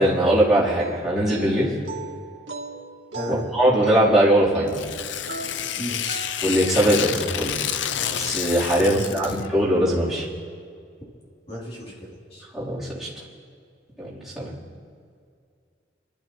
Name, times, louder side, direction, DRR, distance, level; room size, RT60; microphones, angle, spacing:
voice 1, 0.0-1.7 3.3-4.8 6.4-7.6 8.1-10.3 12.5-13.1 14.0-14.5, right 1 dB, ahead, -11 dB, 3.5 m, -21 dB
sound 1, 0.8-6.6, right 3 dB, 80° right, 2.0 m, -38 dB
voice 2, 3.1-3.4 5.8-6.2 8.8-9.2 11.5-12.4, equal, 30° left, -5 dB, 3.2 m, -33 dB
Tearing, 4.7-9.5, left 10 dB, 85° left, 0.5 m, -29 dB
27.0 x 12.5 x 3.1 m, 2.3 s
head